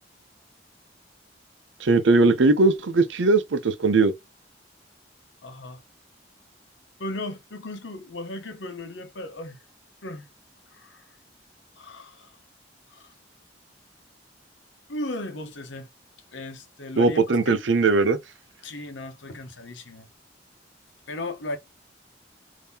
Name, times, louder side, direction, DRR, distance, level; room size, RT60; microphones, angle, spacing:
voice 1, 1.8-4.1 17.0-18.2, right 3 dB, 80° right, 0.6 m, -19 dB
voice 2, 5.4-5.8 7.0-9.6 10.0-10.3 10.7-11.0 11.8-12.3 12.9-13.1 14.9-15.9 16.3-17.6 18.6-20.1 21.1-21.6, left 1 dB, 80° left, 0.9 m, -36 dB
3.6 x 2.8 x 2.7 m
head